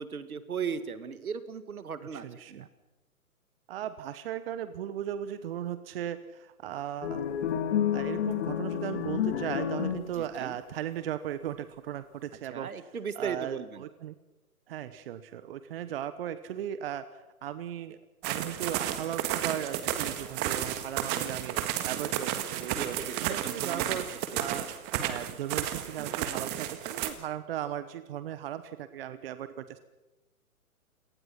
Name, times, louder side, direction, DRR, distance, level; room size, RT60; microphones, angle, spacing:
voice 1, 0.0-2.7 10.2-10.6 12.5-13.8 22.8-24.0 24.5-24.6, right 6 dB, 75° right, 12 dB, 2.1 m, -37 dB
voice 2, 2.1-2.7 3.7-7.3 7.9-12.7 13.1-14.2 14.7-17.0 17.4-18.0 18.2-24.1 24.4-29.8, right 11 dB, 40° right, 12 dB, 1.1 m, -37 dB
sound 1, 7.0-10.5, left 9 dB, 50° left, 2.7 m, -30 dB
sound 2, 18.2-27.1, right 11 dB, 25° right, 1.7 m, -32 dB
29.5 x 18.5 x 5.8 m, 1.1 s
hypercardioid pair, 135°, 44 cm